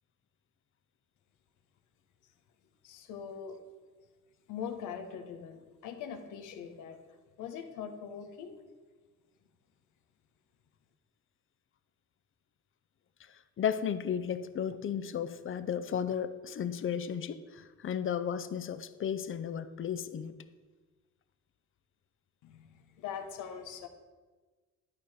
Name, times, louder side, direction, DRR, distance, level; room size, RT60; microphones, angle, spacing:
voice 1, 2.8-3.6 4.5-8.6 22.4-23.9, left 7 dB, 90° left, 5 dB, 1.0 m, -42 dB
voice 2, 13.3-20.3, left 8 dB, 45° left, 13 dB, 0.6 m, -34 dB
11.5 x 4.9 x 4.2 m, 1.4 s
cardioid pair, 90°, 30 cm